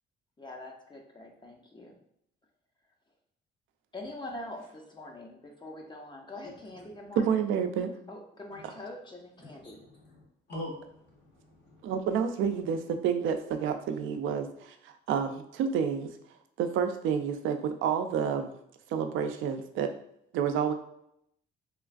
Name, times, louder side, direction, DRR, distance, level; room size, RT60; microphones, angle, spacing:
voice 1, 0.4-2.0 3.9-7.3 8.1-9.8, left 1 dB, 25° left, 1 dB, 0.6 m, -44 dB
voice 2, 7.2-7.9 11.8-16.1 16.6-18.5 18.9-19.9 20.3-20.7, right 7 dB, 80° right, 7 dB, 0.4 m, -29 dB
voice 3, 9.4-10.2 10.5-11.9, left 1 dB, 65° left, -3 dB, 1.2 m, -43 dB
3.1 x 2.4 x 2.4 m, 0.75 s
cardioid pair, 90°, 20 cm